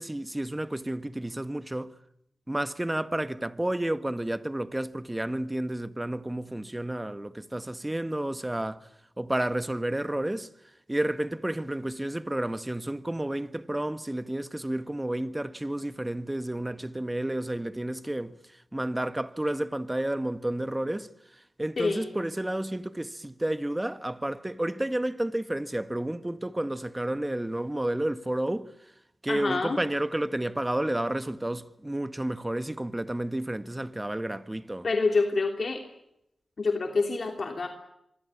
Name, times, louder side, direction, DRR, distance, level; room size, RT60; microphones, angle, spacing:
voice 1, 0.0-1.9 2.5-8.9 9.2-10.5 10.9-21.1 21.6-28.7 29.2-34.9, right 1 dB, 20° right, 1.6 m, -31 dB
voice 2, 21.8-22.1 29.3-29.8 34.8-35.8 36.6-37.7, left 3 dB, 60° left, 3.0 m, -27 dB
25.0 x 24.5 x 8.6 m
cardioid pair, 40°, 0 cm